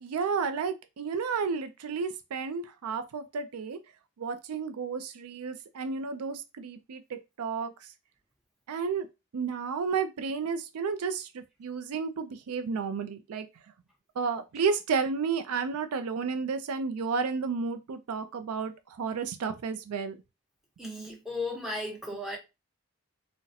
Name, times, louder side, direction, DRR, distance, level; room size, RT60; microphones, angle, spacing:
voice 1, 0.0-3.8 4.2-7.7 8.7-9.1 9.3-13.5 14.2-20.2, right 5 dB, 90° right, 0.4 m, -32 dB
voice 2, 20.8-22.4, left 2 dB, ahead, 0.9 m, -35 dB
3.9 x 2.1 x 2.7 m
head